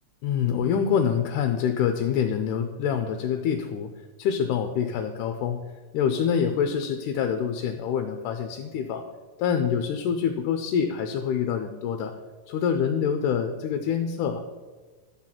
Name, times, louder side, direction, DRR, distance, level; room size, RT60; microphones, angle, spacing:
voice 1, 0.2-3.9 4.2-5.7 5.9-9.0 9.4-12.1 12.5-14.4, left 7 dB, 80° left, 6 dB, 2.0 m, -26 dB
12.0 x 4.0 x 7.4 m, 1.3 s
omnidirectional pair, 3.8 m